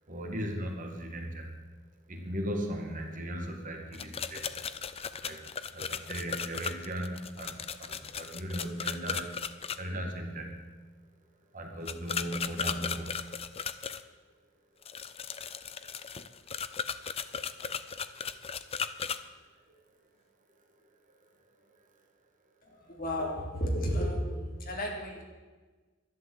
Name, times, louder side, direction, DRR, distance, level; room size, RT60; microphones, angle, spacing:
voice 1, 0.1-1.5 2.1-4.5 5.2-5.4 5.7-9.4 9.8-10.7 11.5-13.4 21.1-21.2 21.6-21.7, equal, 40° right, 2 dB, 2.2 m, -37 dB
sound 1, 3.9-9.8 11.9-14.0 14.8-19.2, left 7 dB, 30° left, 0.5 m, -36 dB
voice 2, 22.6-25.2, equal, 45° left, 0 dB, 2.9 m, -33 dB
11.5 x 11.5 x 8.0 m, 1.3 s
head